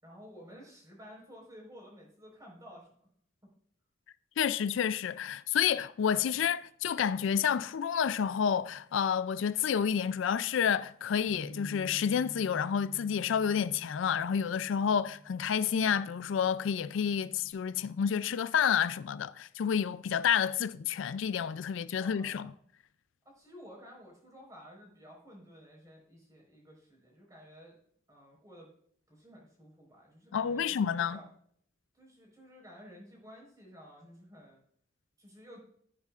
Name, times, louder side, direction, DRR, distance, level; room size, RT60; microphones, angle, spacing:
voice 1, 0.0-2.9 3.4-3.5 22.0-22.6 23.2-27.8 28.1-28.7 29.1-31.3 31.9-34.6 35.2-35.6, equal, 20° right, 4.3 m, -53 dB
voice 2, 4.4-22.5 30.3-31.2, left 7 dB, 80° left, 0.4 m, -29 dB
Bass guitar, 11.3-17.5, right 1 dB, 30° left, 3.0 m, -50 dB
14.0 x 9.7 x 2.4 m
head